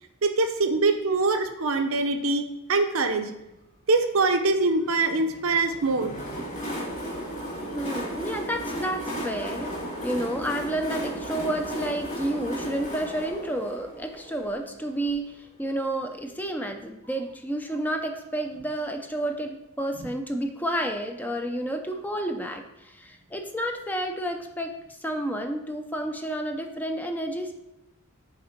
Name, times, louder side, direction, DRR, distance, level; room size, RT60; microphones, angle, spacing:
voice 1, 0.2-3.3 3.9-6.2 20.0-20.1, right 3 dB, 75° right, 6 dB, 0.8 m, -24 dB
Train, 5.5-15.2, equal, 35° left, 2.4 m, -35 dB
voice 2, 7.7-9.7 10.0-24.7 25.0-27.5, right 1 dB, 10° left, 4 dB, 0.5 m, -30 dB
6.5 x 4.3 x 5.8 m, 0.90 s
head